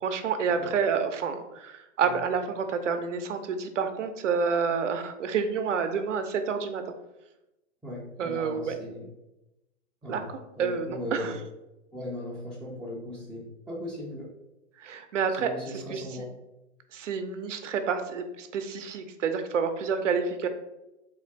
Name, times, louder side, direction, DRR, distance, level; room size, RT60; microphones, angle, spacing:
voice 1, 0.0-6.8 8.2-8.7 10.1-11.3 14.8-16.3 16.9-20.5, right 6 dB, 80° right, 7 dB, 0.7 m, -29 dB
voice 2, 7.8-9.1 10.0-10.3 10.6-11.3 11.9-14.3 15.3-16.3, left 1 dB, ahead, -10 dB, 0.4 m, -38 dB
3.6 x 2.5 x 4.4 m, 0.94 s
hypercardioid pair, 125°, 37 cm